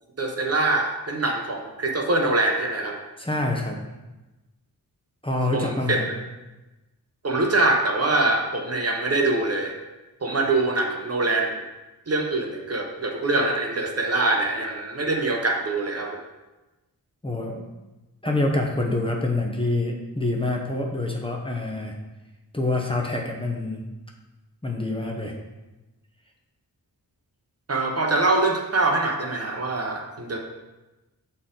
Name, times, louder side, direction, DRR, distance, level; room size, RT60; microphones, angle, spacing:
voice 1, 0.2-3.0 5.5-6.0 7.2-9.8 10.2-11.6 12.1-16.2 27.7-30.4, right 2 dB, 40° right, 1 dB, 0.8 m, -24 dB
voice 2, 3.2-3.8 5.2-6.1 17.2-17.7 18.2-21.9 22.5-23.8 24.6-25.4, left 2 dB, 15° left, -1 dB, 0.8 m, -26 dB
6.3 x 4.2 x 3.8 m, 1.1 s
wide cardioid pair, 90°, 37 cm